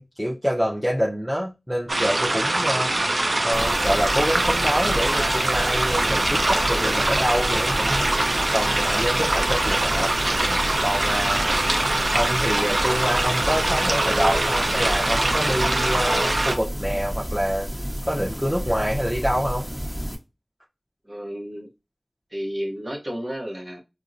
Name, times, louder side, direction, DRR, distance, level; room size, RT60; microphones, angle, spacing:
voice 1, 0.0-2.9 3.4-8.1 8.5-10.1 10.8-11.6 12.1-17.7 18.1-19.7, equal, ahead, 0.6 m, -26 dB
sound 1, 1.9-16.6, right 2 dB, 85° right, 0.5 m, -23 dB
sound 2, 3.5-20.2, equal, 20° right, 1.1 m, -31 dB
voice 2, 21.0-21.7 22.3-23.8, equal, 50° right, 0.8 m, -32 dB
4.3 x 2.0 x 2.5 m
wide cardioid pair, 45°, 0 cm